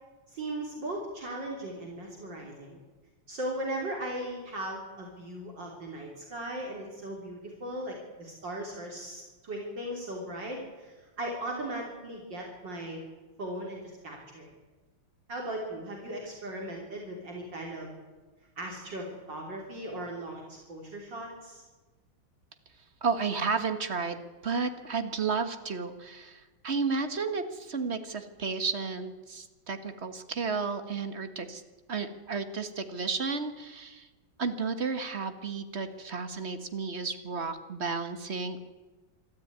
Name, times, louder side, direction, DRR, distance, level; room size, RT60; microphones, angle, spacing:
voice 1, 0.3-2.8 3.3-13.0 13.4-14.5 15.3-17.9 18.6-21.6 35.9-36.0, right 1 dB, 55° right, -1 dB, 4.0 m, -38 dB
voice 2, 23.0-31.6 31.9-34.1 34.4-38.6, right 4 dB, 35° right, 9 dB, 1.5 m, -32 dB
25.5 x 13.5 x 9.4 m, 1.2 s
omnidirectional pair, 2.3 m